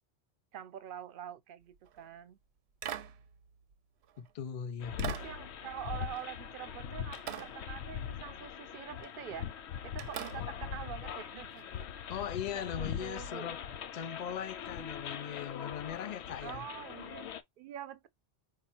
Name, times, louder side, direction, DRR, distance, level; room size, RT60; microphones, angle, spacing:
voice 1, 0.5-2.4 5.1-9.5 9.8-11.7 12.5-13.5 14.2-14.3 16.4-18.1, right 11 dB, 60° right, 0.7 m, -45 dB
sound 1, 1.7-2.1 2.8-4.3 5.0-6.8 7.1-8.4 9.0-9.3 10.0-11.9 13.3-13.4, right 9 dB, 85° right, 0.9 m, -45 dB
voice 2, 4.2-5.2 12.1-13.6 13.9-16.6, left 9 dB, 55° left, 0.5 m, -39 dB
sound 2, 4.8-17.4, left 8 dB, 85° left, 0.8 m, -41 dB
4.9 x 2.4 x 4.2 m
omnidirectional pair, 1.1 m